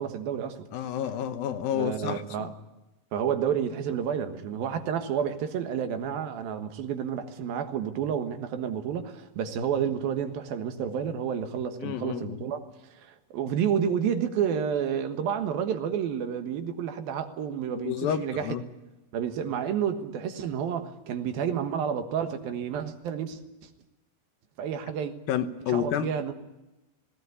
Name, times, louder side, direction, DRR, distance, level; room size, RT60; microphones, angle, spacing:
voice 1, 0.0-0.6 1.7-2.5 3.1-12.6 12.9-18.5 19.1-23.4 24.6-25.1 25.7-26.3, right 8 dB, 80° right, 7 dB, 3.3 m, -30 dB
voice 2, 0.7-2.5 11.8-12.4 17.8-18.6 25.3-26.1, left 9 dB, 80° left, 10 dB, 2.9 m, -30 dB
18.5 x 18.5 x 9.8 m, 1.0 s
omnidirectional pair, 4.2 m